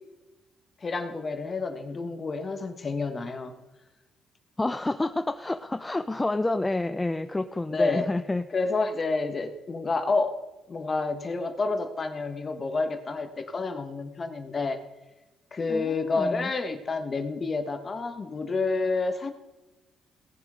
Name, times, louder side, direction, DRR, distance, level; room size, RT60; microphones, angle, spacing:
voice 1, 0.8-3.5 7.7-8.1 8.5-10.4 10.7-14.8 15.5-19.3, left 3 dB, 35° left, 8 dB, 1.6 m, -29 dB
voice 2, 4.6-8.5 15.7-16.5, left 2 dB, 15° left, 11 dB, 0.5 m, -29 dB
18.0 x 7.3 x 5.2 m, 1.1 s
cardioid pair, 90°, 0 cm